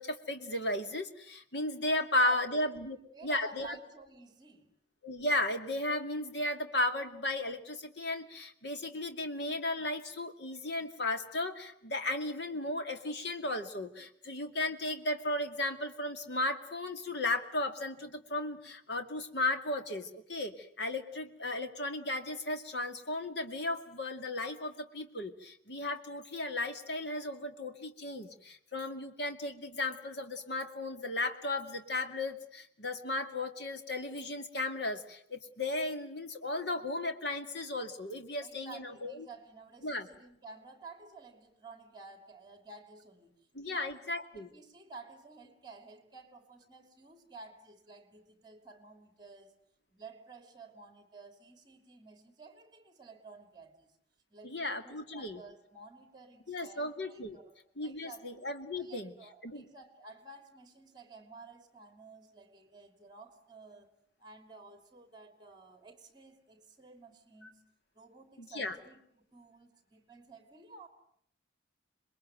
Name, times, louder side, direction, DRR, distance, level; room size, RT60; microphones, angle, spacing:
voice 1, 0.0-3.0 3.2-3.8 5.0-39.2 39.8-40.1 43.5-44.5 54.4-55.4 56.5-57.4 57.8-59.1 59.4-59.7 68.4-68.8, left 2 dB, 60° left, 7 dB, 2.5 m, -35 dB
voice 2, 2.2-4.8 38.4-49.5 49.9-53.9 54.3-58.2 58.7-63.9 64.2-67.6 67.9-70.9, right 3 dB, 25° right, 8 dB, 3.2 m, -52 dB
27.5 x 21.5 x 9.2 m, 0.69 s
head